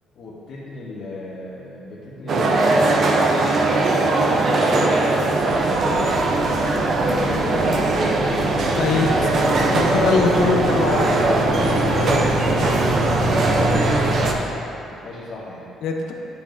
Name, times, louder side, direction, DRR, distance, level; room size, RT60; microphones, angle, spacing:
voice 1, 0.1-3.0 4.2-7.7 8.6-9.2 9.8-10.5 11.6-14.6 14.9-15.7, left 2 dB, 55° left, -7 dB, 1.4 m, -35 dB
sound 1, 2.3-14.3, right 2 dB, 45° right, 0.7 m, -20 dB
sound 2, 5.4-14.3, left 1 dB, 15° left, 1.7 m, -27 dB
voice 2, 9.7-11.2 15.8-16.1, left 5 dB, 70° left, 2 dB, 0.8 m, -22 dB
9.8 x 7.1 x 2.7 m, 2.9 s
cardioid pair, 130°, 0 cm